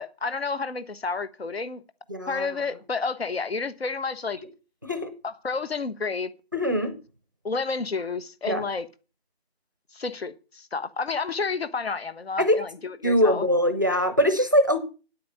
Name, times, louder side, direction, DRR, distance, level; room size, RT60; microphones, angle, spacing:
voice 1, 0.0-1.8 2.3-4.4 5.2-6.3 7.4-8.9 9.9-13.5, left 4 dB, 70° left, 1.4 m, -30 dB
voice 2, 2.1-2.5 4.8-5.1 6.5-6.9 8.5-8.7 12.4-12.6 13.0-14.8, equal, 20° right, 0.6 m, -22 dB
9.6 x 8.6 x 6.7 m
hypercardioid pair, 175°, 32 cm